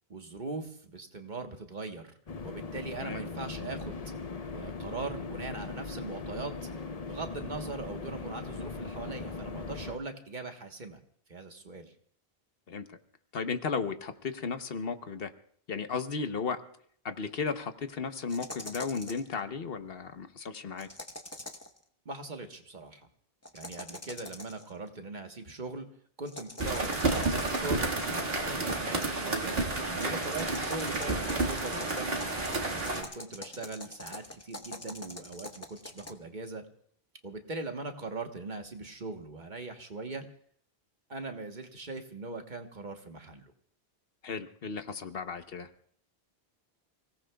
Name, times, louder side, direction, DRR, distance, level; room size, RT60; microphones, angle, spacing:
voice 1, 0.1-2.1 2.4-4.0 4.5-6.5 7.0-11.0 11.3-11.9 22.0-23.1 23.5-25.9 26.2-29.6 30.0-32.2 32.8-36.6 37.2-40.2 41.1-43.5, right 3 dB, 50° right, 5 dB, 1.3 m, -40 dB
sound 1, 2.3-10.0, left 4 dB, 40° left, 0.8 m, -39 dB
voice 2, 3.0-3.3 12.7-13.0 13.3-15.3 15.7-16.6 17.0-20.9 30.5-30.6 44.2-45.7, left 5 dB, 65° left, 9 dB, 1.1 m, -35 dB
sound 2, 18.3-19.3 20.8-21.8 23.4-24.7 26.3-27.8 29.9-36.1, left 1 dB, 15° left, 0.9 m, -44 dB
sound 3, 26.6-33.0, right 3 dB, 65° right, 2.0 m, -31 dB
29.5 x 17.5 x 2.3 m, 0.63 s
omnidirectional pair, 1.1 m